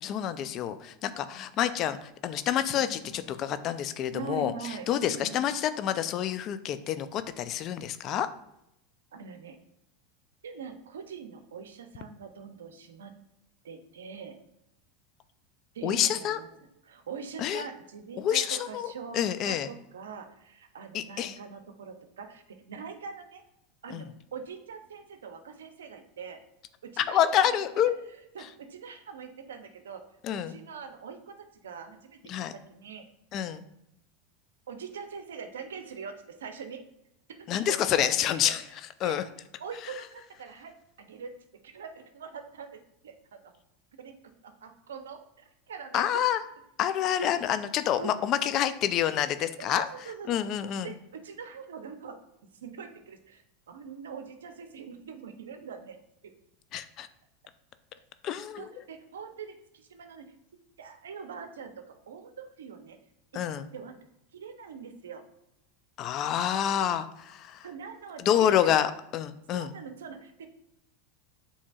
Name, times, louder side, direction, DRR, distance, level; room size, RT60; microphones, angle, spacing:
voice 1, 0.0-8.3 15.8-16.4 17.4-17.6 18.2-19.7 20.9-21.4 23.9-24.0 27.0-28.0 28.4-28.5 30.2-30.6 32.3-32.5 33.3-33.6 37.5-38.6 39.0-39.2 39.8-39.9 45.9-46.4 46.8-49.9 50.3-51.0 56.7-57.1 58.2-58.7 63.3-63.7 66.0-67.7 68.2-69.7, left 10 dB, 45° left, 12 dB, 0.4 m, -28 dB
voice 2, 2.7-3.4 4.1-5.5 9.1-9.6 10.4-13.1 13.6-14.4 15.7-16.5 16.8-23.4 23.8-26.4 26.8-27.6 28.3-30.0 30.3-32.2 32.7-33.1 34.7-36.8 37.4-38.5 39.0-39.2 39.6-41.4 41.6-43.5 43.9-44.1 44.4-46.2 47.2-47.3 48.0-48.1 49.6-50.4 50.8-52.2 52.6-53.4 53.7-56.0 58.6-60.4 60.8-63.0 63.7-63.9 64.3-65.2 67.6-68.9 69.5-70.5, right 6 dB, 90° right, 7 dB, 0.5 m, -43 dB
7.2 x 2.8 x 2.4 m, 0.82 s
hypercardioid pair, 100°, 0 cm